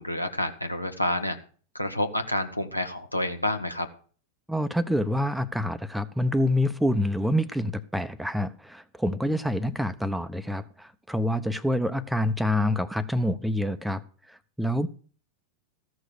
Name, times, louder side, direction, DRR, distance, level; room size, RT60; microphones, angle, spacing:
voice 1, 0.0-1.4 1.7-3.9, left 1 dB, 85° left, 1.2 m, -28 dB
voice 2, 4.5-14.0 14.3-14.9, left 1 dB, ahead, 0.7 m, -27 dB
14.5 x 6.4 x 6.4 m
figure-of-eight pair, 90°, 0 cm